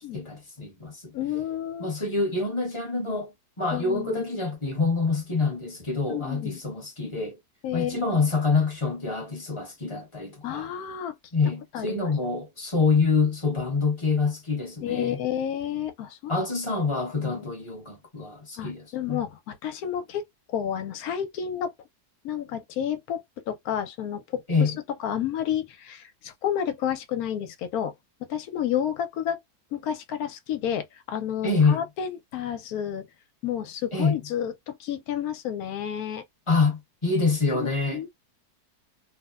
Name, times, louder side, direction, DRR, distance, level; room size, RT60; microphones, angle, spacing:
voice 1, 0.1-1.1 1.8-3.3 3.6-7.4 7.7-10.7 11.3-15.2 16.3-19.2 24.5-24.8 31.4-31.8 33.9-34.2 36.5-38.0, left 4 dB, 25° left, 0.8 m, -26 dB
voice 2, 1.1-2.0 3.7-4.2 6.1-6.6 7.6-8.3 10.4-11.1 11.7-12.1 14.8-16.5 17.2-17.5 18.6-20.2 20.5-21.7 22.2-24.7 25.0-27.9 28.3-29.4 29.7-33.1 33.4-36.2 37.5-38.1, left 9 dB, 70° left, 1.0 m, -31 dB
3.0 x 2.1 x 2.3 m
omnidirectional pair, 1.7 m